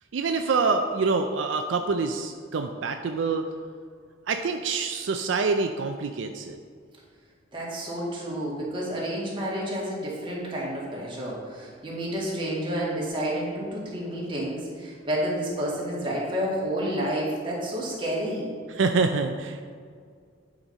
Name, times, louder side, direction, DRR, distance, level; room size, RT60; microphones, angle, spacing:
voice 1, 0.1-3.5 4.3-6.6 18.7-19.6, right 4 dB, 75° right, 5 dB, 0.4 m, -26 dB
voice 2, 7.5-18.5, equal, 25° right, -5 dB, 2.0 m, -30 dB
8.9 x 5.1 x 4.1 m, 2.1 s
head